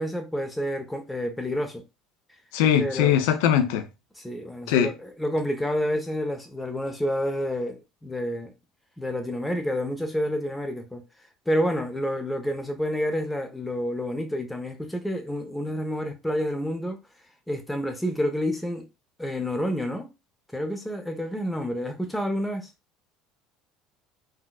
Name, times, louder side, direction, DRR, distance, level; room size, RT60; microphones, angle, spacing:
voice 1, 0.0-1.8 2.8-3.2 4.2-8.5 9.0-11.0 11.5-17.0 17.5-18.9 19.2-20.1 20.5-22.7, equal, 5° left, 0.8 m, -29 dB
voice 2, 2.5-3.9 4.7-4.9, left 9 dB, 65° left, 0.5 m, -21 dB
3.7 x 2.3 x 2.4 m
figure-of-eight pair, 65°, 0 cm